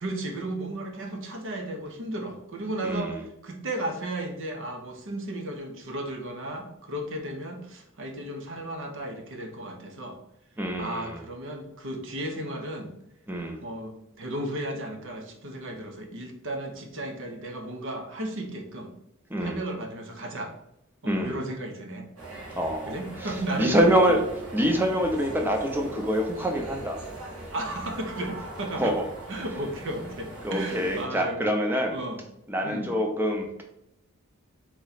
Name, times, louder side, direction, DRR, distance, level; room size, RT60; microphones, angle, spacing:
voice 1, 0.0-10.2 10.8-12.9 13.6-18.9 19.4-20.5 21.0-22.1 22.9-24.2 27.5-29.0 29.3-31.5 31.9-32.2 32.6-33.0, right 1 dB, 60° right, 4 dB, 0.8 m, -34 dB
voice 2, 2.8-3.2 10.6-11.2 13.3-13.6 19.3-19.6 21.0-21.3 22.6-23.3 23.6-24.2 24.5-27.0 28.8-29.0 30.4-32.0 32.5-33.6, equal, 10° right, 3 dB, 0.6 m, -25 dB
sound 1, 22.2-31.0, right 2 dB, 85° right, 1.4 m, -40 dB
4.0 x 3.1 x 4.0 m, 0.81 s
head